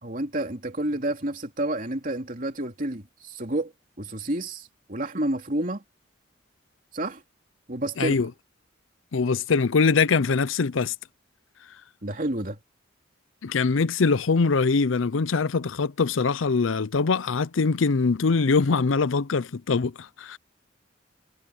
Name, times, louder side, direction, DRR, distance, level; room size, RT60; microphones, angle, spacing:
voice 1, 0.0-3.7 4.0-5.8 6.9-7.2 7.7-8.2 12.0-12.6, right 1 dB, 45° right, 3.0 m, -29 dB
voice 2, 8.0-8.3 9.1-10.9 13.4-20.4, left 4 dB, 85° left, 0.6 m, -23 dB
head